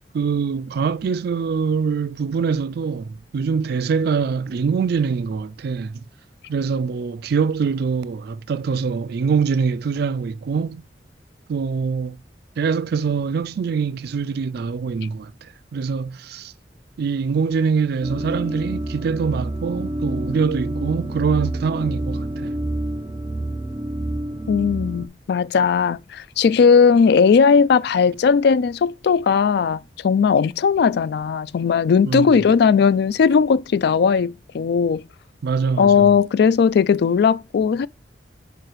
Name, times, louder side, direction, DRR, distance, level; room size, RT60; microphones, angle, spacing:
voice 1, 0.1-6.0 6.5-10.9 11.5-12.2 12.6-16.5 17.0-22.6 32.0-32.4 35.4-36.1, right 5 dB, 60° right, 0.3 m, -24 dB
sound 1, 18.0-25.1, right 1 dB, 20° right, 0.6 m, -28 dB
voice 2, 24.5-35.0 35.8-37.9, left 6 dB, 65° left, 0.3 m, -17 dB
4.9 x 4.7 x 4.5 m
head